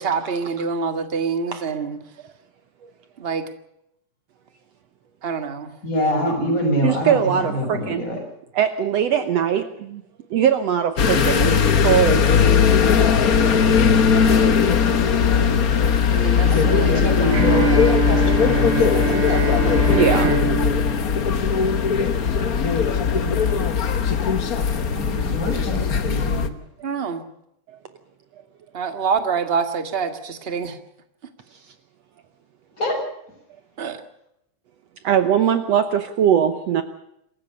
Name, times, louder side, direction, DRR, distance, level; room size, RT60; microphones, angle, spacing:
voice 1, 0.0-2.0 3.2-3.4 5.2-5.7 14.2-14.6 16.1-17.5 26.8-27.2 28.7-30.8 33.8-34.0, right 5 dB, 25° right, 9 dB, 1.3 m, -26 dB
voice 2, 5.8-8.2 16.5-19.7 20.2-20.4 24.9-26.5 32.8-33.0, equal, 25° left, 1 dB, 7.3 m, -25 dB
voice 3, 6.8-8.2 8.6-10.0 10.3-12.3 15.4-15.5 19.9-20.4 22.0-22.1 23.1-23.3 35.0-36.8, right 9 dB, 65° right, 10 dB, 1.9 m, -21 dB
sound 1, 11.0-26.5, left 6 dB, 70° left, 0.8 m, -19 dB
Bowed string instrument, 17.3-22.2, right 4 dB, 85° right, 4.9 m, -25 dB
27.0 x 15.0 x 6.7 m, 0.78 s
omnidirectional pair, 3.5 m